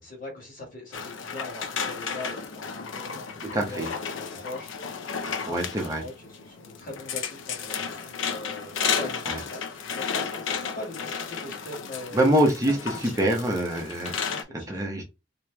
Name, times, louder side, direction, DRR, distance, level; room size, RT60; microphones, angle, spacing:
voice 1, 0.0-12.4 12.7-12.8 13.0-13.3 14.2-14.9, left 2 dB, 45° left, -1 dB, 1.9 m, -41 dB
sound 1, 0.9-14.4, left 6 dB, 90° left, 0.6 m, -33 dB
voice 2, 3.4-3.9 5.4-6.0 9.3-9.4 12.1-15.0, right 1 dB, 15° right, 1 dB, 0.8 m, -25 dB
3.1 x 3.0 x 3.4 m, 0.25 s
head